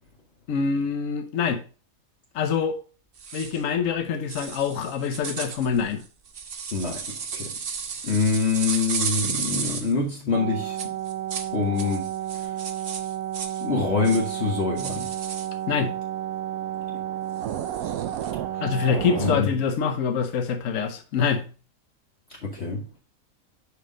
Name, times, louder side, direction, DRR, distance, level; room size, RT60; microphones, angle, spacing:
voice 1, 0.5-1.6 2.3-2.8 3.3-6.0 15.7-15.9 18.6-21.5, left 6 dB, 70° left, 1.2 m, -25 dB
sound 1, 3.2-3.6 4.3-9.9 10.8-11.5 11.8-13.6 14.0-14.3 14.8-15.5 17.4-18.3, right 6 dB, 50° right, 0.9 m, -33 dB
voice 2, 6.7-7.5 8.0-10.8 11.5-12.1 12.3-12.5 13.6-15.1 18.5-18.6 19.2-19.5 22.4-22.8, left 4 dB, 50° left, 1.3 m, -25 dB
sound 2, 10.3-19.4, right 11 dB, 90° right, 1.1 m, -31 dB
6.4 x 5.2 x 3.8 m
omnidirectional pair, 1.5 m